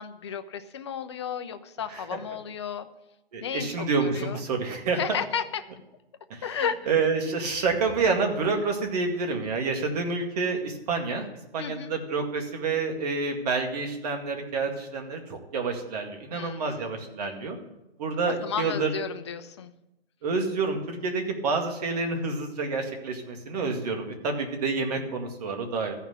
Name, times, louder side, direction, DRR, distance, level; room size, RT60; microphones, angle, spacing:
voice 1, 0.0-2.9 3.4-4.5 5.0-5.7 6.4-6.9 11.6-11.9 16.3-16.9 18.3-19.7, left 7 dB, 25° left, 9 dB, 0.5 m, -33 dB
voice 2, 3.3-5.2 6.3-6.4 6.9-11.3 11.5-17.6 18.0-18.9 20.2-25.9, right 4 dB, 40° right, 3 dB, 2.1 m, -28 dB
14.0 x 5.8 x 8.1 m, 0.93 s
hypercardioid pair, 160°, 31 cm